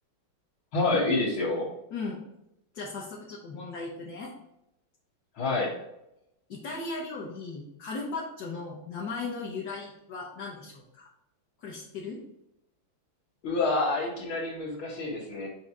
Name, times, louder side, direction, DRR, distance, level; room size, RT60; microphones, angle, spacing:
voice 1, 0.7-1.7 5.4-5.7 13.4-15.5, left 2 dB, 70° left, -10 dB, 2.5 m, -27 dB
voice 2, 1.9-2.2 2.7-4.3 6.5-11.1 11.6-12.2, left 3 dB, 55° left, -4 dB, 1.5 m, -37 dB
7.0 x 3.0 x 4.8 m, 0.83 s
omnidirectional pair, 2.3 m